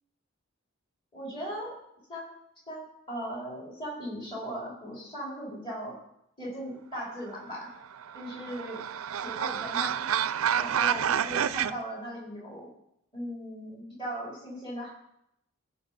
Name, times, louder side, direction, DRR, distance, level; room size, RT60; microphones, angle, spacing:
voice 1, 1.1-1.7 2.1-2.3 2.7-6.0 6.4-7.7 8.1-8.8 9.2-10.0 10.6-12.7 13.1-14.9, equal, 25° left, -6 dB, 4.7 m, -38 dB
sound 1, 7.8-11.7, right 9 dB, 75° right, 0.4 m, -29 dB
15.5 x 5.3 x 5.2 m, 0.76 s
head